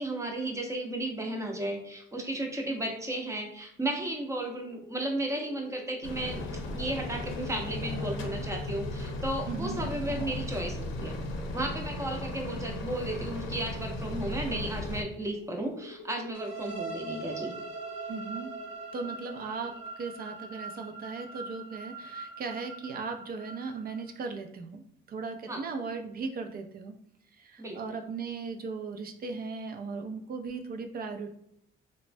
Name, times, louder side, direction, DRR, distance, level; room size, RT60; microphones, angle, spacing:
voice 1, 0.0-6.4 6.7-11.2 11.5-17.5 25.5-25.6 27.6-27.8, right 1 dB, 15° right, 2 dB, 0.7 m, -34 dB
sound 1, 4.4-10.6 12.8-19.9, left 5 dB, 30° left, 0.5 m, -49 dB
sound 2, 6.0-15.0, left 1 dB, 80° left, 0.6 m, -36 dB
voice 2, 9.5-9.8 18.1-18.5 18.9-24.8 25.1-27.0 27.3-31.3, right 4 dB, 50° right, 6 dB, 0.5 m, -37 dB
sound 3, 16.3-24.1, right 4 dB, 85° right, 0.7 m, -42 dB
3.0 x 2.1 x 2.5 m, 0.73 s
cardioid pair, 90°, 20 cm